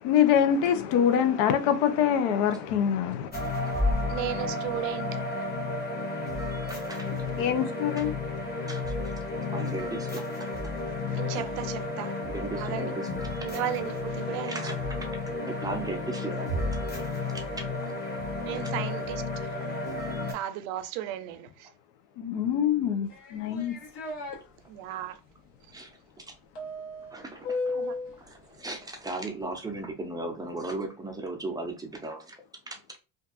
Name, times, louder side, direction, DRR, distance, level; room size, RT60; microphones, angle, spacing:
voice 1, 0.0-3.3 7.4-8.1 22.2-23.7, left 9 dB, 85° left, 0.7 m, -24 dB
sound 1, 3.3-20.3, left 2 dB, 20° left, 0.8 m, -32 dB
voice 2, 4.1-5.2 11.1-12.1 12.5-12.9 13.4-14.6 18.4-19.2 20.3-21.7 24.7-25.2 27.8-28.0, right 11 dB, 80° right, 0.5 m, -35 dB
voice 3, 6.7-7.1 8.0-9.1 9.5-10.2 12.3-13.1 14.4-15.0 15.4-16.5 17.3-17.7 18.5-18.8 25.7-25.9 26.2-26.3 27.1-27.9 28.2-32.4 32.7-32.8, right 2 dB, 10° right, 0.4 m, -37 dB
sound 2, 23.1-24.4 26.6-28.2, left 3 dB, 65° left, 1.1 m, -34 dB
2.6 x 2.3 x 2.4 m
cardioid pair, 110°, 48 cm